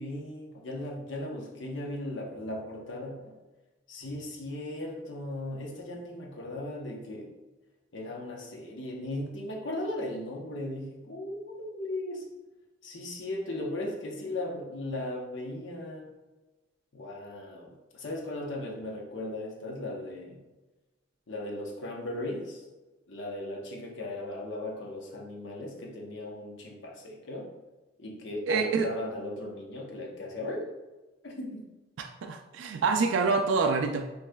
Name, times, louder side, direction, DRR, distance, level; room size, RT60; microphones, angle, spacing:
voice 1, 0.0-3.4 3.9-7.3 7.9-12.3 12.8-16.1 16.9-20.4 21.3-22.6 23.1-27.5 28.0-30.7 31.2-31.6, left 1 dB, 70° left, 0 dB, 0.9 m, -37 dB
voice 2, 28.5-28.9 32.0-34.0, right 4 dB, 70° right, 4 dB, 0.3 m, -26 dB
6.3 x 3.1 x 2.3 m, 1.1 s
head